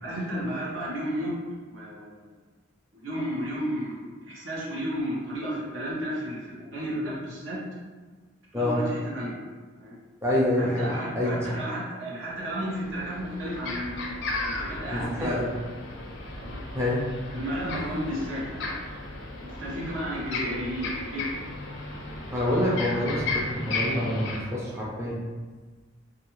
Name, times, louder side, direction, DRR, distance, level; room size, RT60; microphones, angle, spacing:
voice 1, 0.0-1.3 1.7-2.3 2.9-7.6 8.5-9.4 9.8-10.0 10.6-15.4 16.3-16.6 17.3-18.8 19.3-21.4 22.1-22.2, equal, 80° right, -6 dB, 0.8 m, -33 dB
voice 2, 10.2-11.4 14.8-15.5 16.7-17.1 22.3-25.2, left 1 dB, 15° right, -6 dB, 0.4 m, -26 dB
sound 1, 12.3-12.4 12.8-24.4, left 2 dB, 60° left, 0.4 m, -35 dB
2.4 x 2.2 x 2.9 m, 1.4 s
head